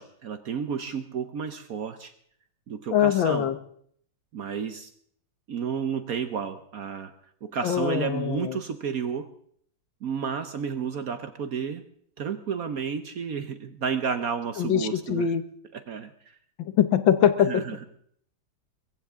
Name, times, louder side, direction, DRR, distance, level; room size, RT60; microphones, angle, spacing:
voice 1, 0.0-2.1 2.7-3.5 4.3-4.9 5.5-7.1 7.4-9.3 10.0-11.8 12.2-15.3 15.7-16.1 17.4-17.8, right 6 dB, 55° right, 10 dB, 1.1 m, -31 dB
voice 2, 2.9-3.5 7.6-8.6 14.6-15.4 16.6-17.6, left 9 dB, 75° left, 12 dB, 1.7 m, -23 dB
22.0 x 15.0 x 3.6 m, 0.63 s
omnidirectional pair, 2.2 m